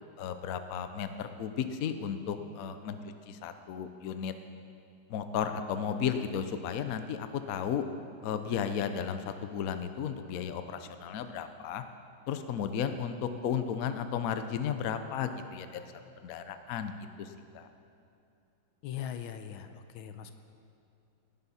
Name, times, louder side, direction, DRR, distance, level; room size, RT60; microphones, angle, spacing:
voice 1, 0.0-3.0 3.3-4.3 5.1-7.8 8.2-11.8 12.3-15.8 16.2-16.9 17.2-17.7, left 8 dB, 60° left, 9 dB, 0.9 m, -34 dB
voice 2, 18.8-20.3, left 9 dB, 90° left, 9 dB, 1.5 m, -40 dB
17.5 x 11.0 x 4.2 m, 2.6 s
omnidirectional pair, 2.1 m